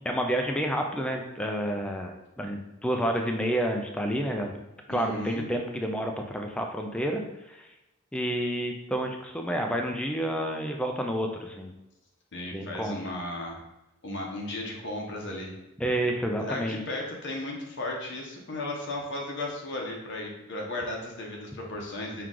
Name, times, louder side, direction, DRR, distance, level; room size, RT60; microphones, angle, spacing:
voice 1, 0.0-4.6 4.9-7.2 7.5-7.7 8.1-11.7 12.5-13.0 15.8-17.0, equal, 5° left, 2 dB, 0.3 m, -29 dB
voice 2, 4.9-5.5 12.3-13.6 14.0-15.5 16.4-22.3, left 1 dB, 60° left, -1 dB, 0.9 m, -35 dB
4.5 x 2.4 x 3.7 m, 0.95 s
head